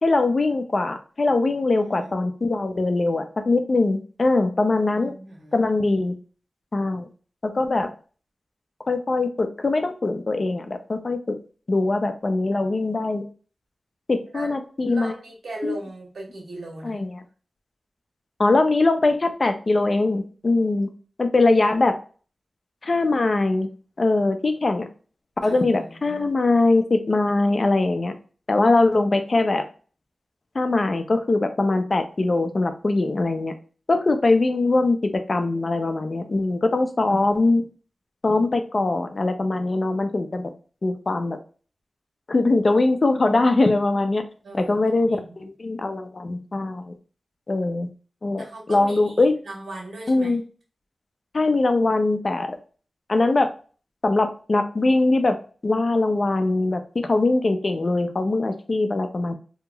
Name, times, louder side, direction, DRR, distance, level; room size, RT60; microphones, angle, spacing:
voice 1, 0.0-5.1 5.5-6.1 6.7-7.1 7.4-7.9 8.9-11.4 11.7-13.2 14.1-15.1 15.6-15.7 16.8-17.1 18.4-20.9 21.2-22.0 22.8-23.7 24.0-24.9 25.4-28.1 28.5-29.6 30.5-33.5 33.9-37.6 38.2-40.5 40.8-41.4 42.3-44.2 44.5-46.9 47.5-47.9 48.2-49.3 50.1-50.4 51.3-52.6 53.1-53.5 54.0-55.4 55.6-59.3, left 2 dB, 50° left, 7 dB, 0.5 m, -22 dB
voice 2, 1.7-2.1 4.9-5.6 14.3-14.5 14.9-17.0 25.4-26.3 44.4-44.8 45.1-45.4 48.4-50.4, right 2 dB, 85° right, -2 dB, 1.3 m, -38 dB
2.8 x 2.8 x 2.3 m, 0.38 s
wide cardioid pair, 60°, 0 cm